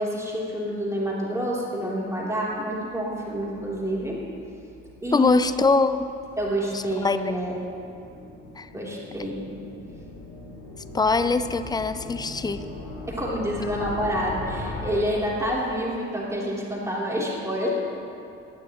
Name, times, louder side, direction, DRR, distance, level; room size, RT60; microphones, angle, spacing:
voice 1, 0.0-4.2 5.0-5.5 6.4-7.6 8.7-9.5 13.1-17.7, equal, 10° right, -5 dB, 3.4 m, -28 dB
sound 1, 3.0-15.9, left 2 dB, 70° left, 2.4 m, -40 dB
voice 2, 5.1-6.1 6.7-7.2 8.6-8.7 10.9-12.6, left 4 dB, 10° left, 12 dB, 0.6 m, -22 dB
18.0 x 13.0 x 3.1 m, 2.7 s
figure-of-eight pair, 45°, 33 cm